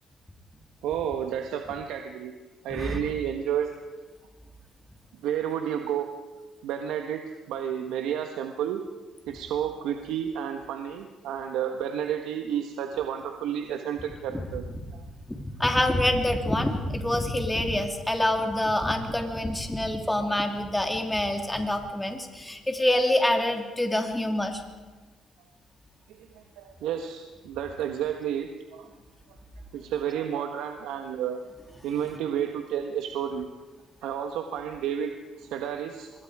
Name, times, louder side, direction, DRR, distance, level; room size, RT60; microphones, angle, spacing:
voice 1, 0.8-2.3 2.6-3.7 5.1-6.1 6.6-8.8 9.3-14.6 14.9-15.0 26.1-28.9 29.7-31.4 31.8-33.5 34.0-36.1, right 9 dB, 90° right, 5 dB, 1.4 m, -31 dB
voice 2, 2.7-3.1 14.3-15.0 15.3-24.6, left 1 dB, 10° left, 4 dB, 2.7 m, -26 dB
25.0 x 21.5 x 4.9 m, 1.3 s
cardioid pair, 110°, 0 cm